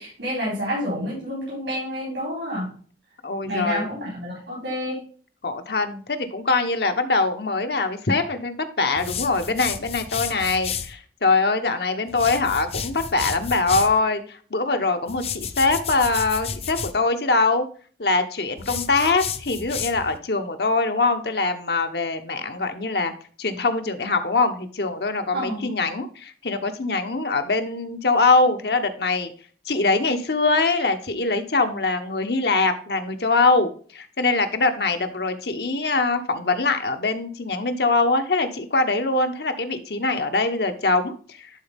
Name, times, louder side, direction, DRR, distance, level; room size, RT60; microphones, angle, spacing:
voice 1, 0.0-2.8 3.4-5.0 25.3-25.7, equal, 90° right, -6 dB, 4.3 m, -29 dB
voice 2, 3.2-3.9 5.4-17.7 18.0-23.1 23.4-29.3 29.7-41.5, left 3 dB, 65° left, 7 dB, 1.1 m, -23 dB
sound 1, 9.0-10.9 12.1-14.0 15.1-17.0 18.6-20.2, left 7 dB, 35° left, 0.6 m, -32 dB
11.5 x 4.1 x 3.5 m, 0.44 s
head